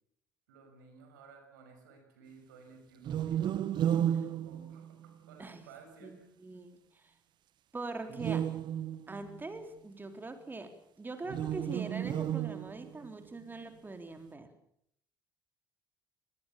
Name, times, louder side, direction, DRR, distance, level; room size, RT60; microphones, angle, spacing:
voice 1, 0.5-3.5 3.9-6.2, right 5 dB, 70° right, 5 dB, 6.4 m, -56 dB
sound 1, 3.0-5.3 8.1-9.4 11.2-13.1, right 10 dB, 45° right, 0.9 m, -33 dB
voice 2, 6.0-7.1 7.7-8.5 9.1-14.5, right 3 dB, 20° right, 8 dB, 3.8 m, -43 dB
25.0 x 20.0 x 7.3 m, 0.71 s
figure-of-eight pair, 60°, 11 cm